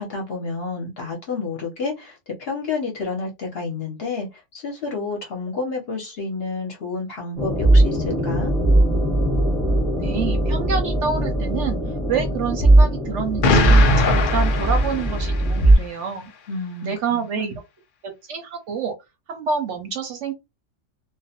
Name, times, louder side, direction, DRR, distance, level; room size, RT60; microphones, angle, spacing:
voice 1, 0.0-8.5 16.5-17.4, left 4 dB, 55° left, 0.8 m, -30 dB
sound 1, 7.4-15.8, right 1 dB, 5° left, 0.8 m, -19 dB
voice 2, 10.0-11.8 12.1-16.3 16.8-17.6 18.0-18.9 19.3-20.3, right 6 dB, 65° right, 0.8 m, -27 dB
Explosion, 13.4-15.6, left 3 dB, 75° left, 0.4 m, -21 dB
2.4 x 2.1 x 2.7 m
omnidirectional pair, 1.5 m